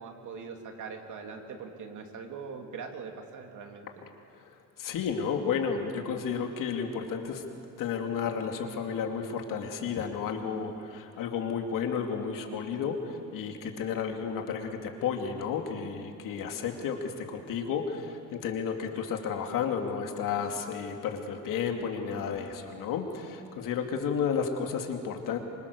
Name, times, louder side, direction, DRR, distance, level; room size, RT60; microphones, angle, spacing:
voice 1, 0.0-4.0, right 5 dB, 65° right, 3 dB, 3.0 m, -42 dB
voice 2, 4.5-7.4 7.8-25.4, left 6 dB, 85° left, 3 dB, 2.6 m, -32 dB
26.5 x 25.0 x 6.8 m, 2.7 s
cardioid pair, 145°, 32 cm